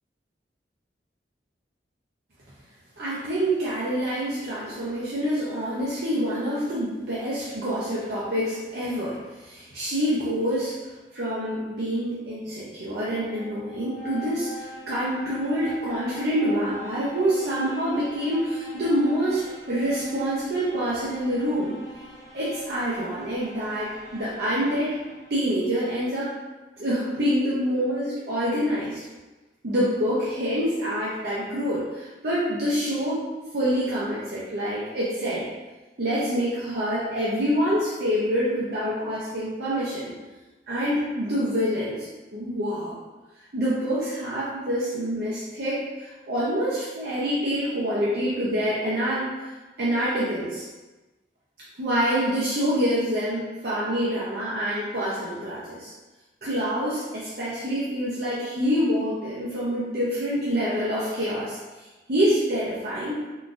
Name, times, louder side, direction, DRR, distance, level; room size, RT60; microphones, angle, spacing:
voice 1, 3.0-10.8 11.1-21.7 22.3-25.0 25.3-26.3 26.8-29.0 29.6-33.2 33.5-35.5 36.0-40.1 40.7-42.1 42.3-43.0 43.5-49.3 49.8-50.6 51.8-55.9 56.4-61.6 62.1-63.2, equal, 65° right, -9 dB, 0.6 m, -26 dB
sound 1, 12.8-25.6, equal, 20° left, 1.3 m, -43 dB
3.7 x 2.4 x 2.5 m, 1.2 s
head